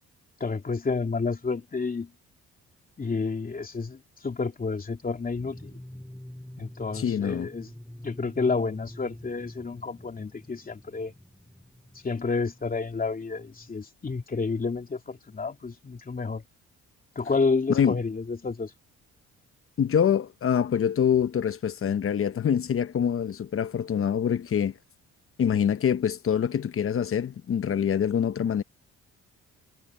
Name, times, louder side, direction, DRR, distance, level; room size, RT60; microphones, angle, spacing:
voice 1, 0.4-2.1 3.0-5.8 6.6-7.7 8.0-11.1 12.0-16.4 17.1-18.7, left 4 dB, 30° left, 2.9 m, -30 dB
sound 1, 5.4-13.8, left 1 dB, 5° left, 4.8 m, -46 dB
voice 2, 6.9-7.5 17.7-18.0 19.8-24.7 25.4-28.6, left 8 dB, 45° left, 1.0 m, -25 dB
cardioid pair, 90°, 30 cm